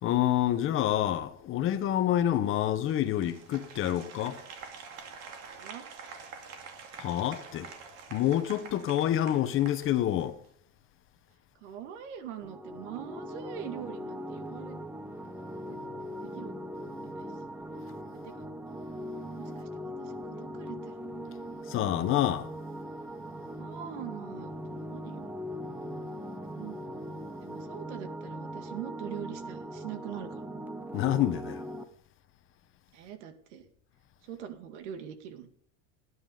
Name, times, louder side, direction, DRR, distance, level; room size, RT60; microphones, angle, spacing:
voice 1, 0.0-4.4 7.0-7.7 8.1-10.3 21.7-22.5 30.9-31.6, left 12 dB, 35° left, 1.1 m, -27 dB
Applause, 2.9-10.5, right 6 dB, 45° right, 2.4 m, -47 dB
voice 2, 5.4-5.9 11.6-14.8 15.7-15.8 16.2-16.5 17.1-17.3 18.2-18.4 19.4-20.9 23.6-25.3 26.6-26.7 27.4-30.5 32.9-33.7 34.2-35.5, right 9 dB, 80° right, 2.1 m, -43 dB
sound 1, 12.4-31.8, equal, 5° right, 0.8 m, -40 dB
18.5 x 9.7 x 4.0 m
supercardioid pair, 145°, 35 cm